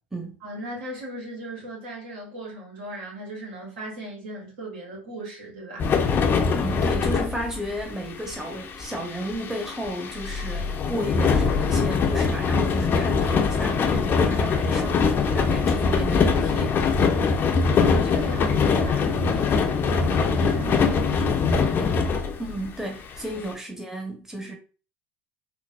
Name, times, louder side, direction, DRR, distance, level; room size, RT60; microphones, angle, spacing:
voice 1, 0.4-5.9 10.9-11.1 17.7-19.6 19.9-21.9 23.3-23.4, right 1 dB, 70° right, 1.4 m, -38 dB
sound 1, 5.8-22.7 23.2-23.3 23.5-23.6, left 5 dB, 35° left, 0.5 m, -23 dB
voice 2, 6.6-16.7 22.4-24.5, right 1 dB, 5° right, 0.8 m, -33 dB
3.9 x 2.1 x 2.3 m
hypercardioid pair, 80°, 6 cm